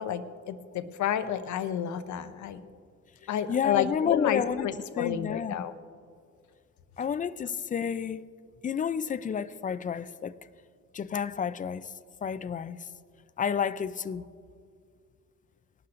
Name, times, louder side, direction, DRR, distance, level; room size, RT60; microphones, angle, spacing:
voice 1, 0.0-2.6 3.3-5.7, left 9 dB, 70° left, 0.7 m, -31 dB
voice 2, 3.5-4.7 5.0-5.7 7.0-8.2 8.6-10.4 10.9-11.9 12.2-12.8 13.4-14.2, left 7 dB, 25° left, 0.4 m, -30 dB
19.0 x 12.0 x 2.5 m
cardioid pair, 90°, 30 cm